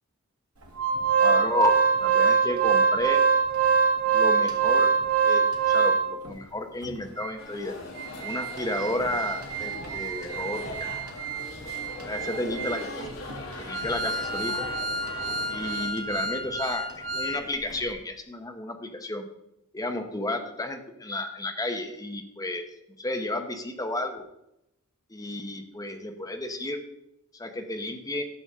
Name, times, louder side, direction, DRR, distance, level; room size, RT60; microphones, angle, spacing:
Organ, 0.8-6.3 6.8-6.9 7.2-7.3 7.8-17.4 17.7-17.8, right 5 dB, 75° right, 2.2 m, -25 dB
voice 1, 1.2-3.2 4.1-4.9 5.2-7.7 8.2-10.9 12.0-13.0 13.6-14.7 15.5-16.9 17.1-19.3 19.7-22.6 23.0-24.2 25.1-26.8 27.3-28.2, left 1 dB, 15° left, 4 dB, 1.0 m, -32 dB
sound 1, 7.4-15.9, left 2 dB, 65° left, 2.6 m, -40 dB
13.0 x 7.1 x 3.7 m, 0.83 s
head